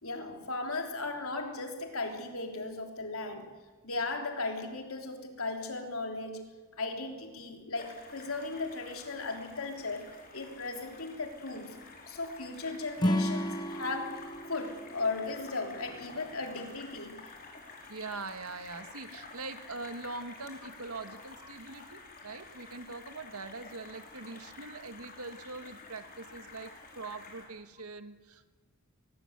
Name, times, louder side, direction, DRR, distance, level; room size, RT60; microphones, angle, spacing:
voice 1, 0.0-3.6 3.8-10.1 10.3-17.3, left 3 dB, 70° left, 3 dB, 3.5 m, -37 dB
sound 1, 7.7-27.4, left 3 dB, 40° left, 5.4 m, -50 dB
Acoustic guitar / Strum, 13.0-16.3, equal, 20° left, 1.3 m, -33 dB
voice 2, 17.9-28.5, right 3 dB, 85° right, 9 dB, 1.8 m, -43 dB
23.0 x 21.0 x 8.2 m, 1.3 s
head